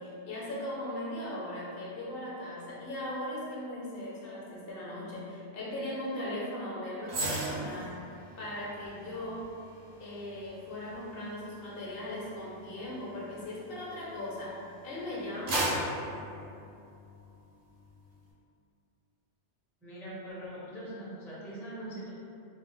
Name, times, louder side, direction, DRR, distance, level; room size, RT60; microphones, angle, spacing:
voice 1, 0.0-8.0 8.4-9.5 10.0-15.7, left 1 dB, 60° left, -6 dB, 0.8 m, -38 dB
sound 1, 7.1-14.5 14.9-17.3 17.7-17.9, right 1 dB, 60° right, 0.9 m, -38 dB
voice 2, 19.8-22.1, right 1 dB, 5° left, -8 dB, 0.4 m, -42 dB
2.5 x 2.2 x 3.7 m, 2.5 s
omnidirectional pair, 1.2 m